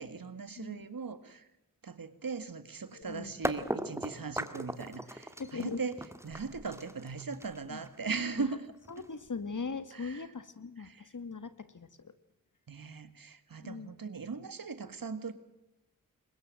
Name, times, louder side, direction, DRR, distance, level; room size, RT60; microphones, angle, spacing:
voice 1, 0.0-1.5 1.8-6.0 6.2-8.7 9.9-10.3 10.8-11.1 12.7-15.3, right 4 dB, 75° right, 12 dB, 1.9 m, -39 dB
voice 2, 0.6-0.9 2.9-3.3 5.4-5.8 7.7-7.8 8.4-8.5 8.9-12.1 13.6-13.9, left 4 dB, 60° left, 13 dB, 1.8 m, -40 dB
sound 1, 3.0-3.1 3.4-9.3, right 1 dB, 10° right, 1.8 m, -38 dB
22.5 x 20.5 x 7.6 m, 0.92 s
cardioid pair, 40°, 34 cm